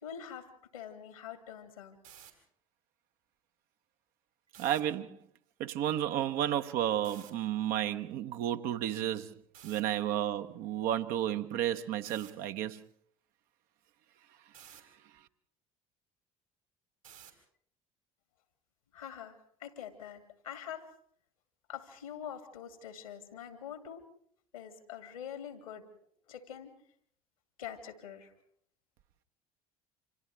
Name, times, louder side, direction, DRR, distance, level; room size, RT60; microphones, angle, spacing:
voice 1, 0.0-2.0 18.9-20.9 21.7-24.0 24.5-25.9 26.3-26.7 27.6-28.3, left 9 dB, 75° left, 2.4 m, -45 dB
sound 1, 1.9-2.3 4.5-4.8 7.0-7.3 9.5-9.8 12.0-12.3 14.5-14.8 17.0-17.4, right 9 dB, 75° right, 3.1 m, -52 dB
voice 2, 4.6-5.2 5.6-9.3 9.6-12.8, right 11 dB, 55° right, 1.0 m, -32 dB
30.0 x 26.5 x 3.3 m
figure-of-eight pair, 55°, 18 cm